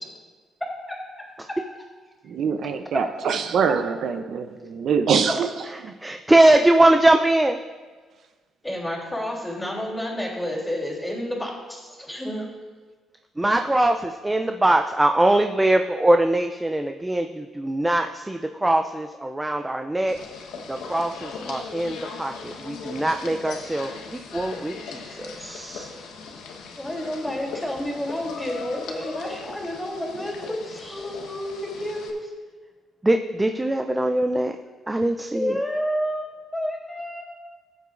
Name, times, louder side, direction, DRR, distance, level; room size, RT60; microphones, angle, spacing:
voice 1, 0.6-1.0 1.5-1.6 8.6-12.5 26.8-32.3 35.3-36.3 36.5-37.2, equal, 5° left, -3 dB, 3.2 m, -30 dB
voice 2, 2.2-5.5 5.8-5.9, right 6 dB, 65° right, 7 dB, 0.6 m, -24 dB
voice 3, 6.0-7.6 13.4-20.2 20.7-25.9 33.0-34.5 34.9-35.6, right 1 dB, 10° right, 5 dB, 0.5 m, -22 dB
sound 1, 20.1-32.1, left 4 dB, 90° left, 1.2 m, -38 dB
15.0 x 8.2 x 2.6 m, 1.4 s
cardioid pair, 95°, 0 cm